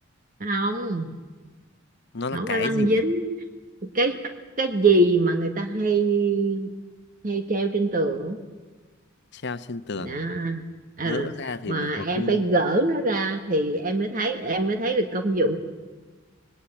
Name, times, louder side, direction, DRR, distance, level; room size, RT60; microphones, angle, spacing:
voice 1, 0.4-1.1 2.3-3.3 3.8-4.2 4.6-6.7 7.2-8.4 10.0-10.6 11.0-11.3 11.7-15.6, right 2 dB, 45° right, 6 dB, 1.6 m, -24 dB
voice 2, 2.1-3.0 9.3-10.2 11.0-12.4, left 3 dB, 60° left, 12 dB, 0.9 m, -32 dB
25.5 x 19.5 x 8.9 m, 1.3 s
head